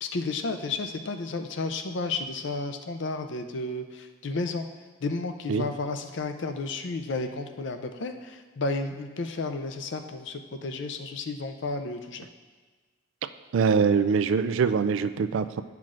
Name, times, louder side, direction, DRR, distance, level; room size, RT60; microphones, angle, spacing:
voice 1, 0.0-4.7 5.0-12.3, left 3 dB, 60° left, 7 dB, 0.5 m, -32 dB
voice 2, 13.5-15.6, right 5 dB, 70° right, 12 dB, 0.3 m, -23 dB
10.5 x 5.8 x 2.5 m, 1.4 s
head